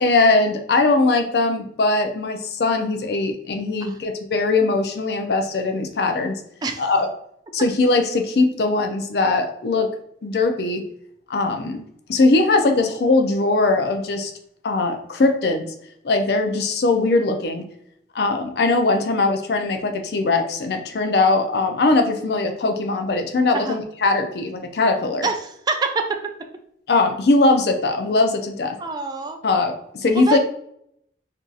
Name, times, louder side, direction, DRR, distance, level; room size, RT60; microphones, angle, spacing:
voice 1, 0.0-6.4 6.8-7.1 7.5-9.9 10.2-10.8 11.3-11.8 12.1-14.3 14.6-15.7 16.0-17.7 18.1-25.3 26.9-28.8 29.4-30.4, left 3 dB, 65° left, 5 dB, 0.4 m, -20 dB
voice 2, 25.2-26.1 28.8-29.4 30.3-30.4, right 3 dB, 20° right, 5 dB, 0.3 m, -25 dB
2.6 x 2.4 x 3.8 m, 0.71 s
head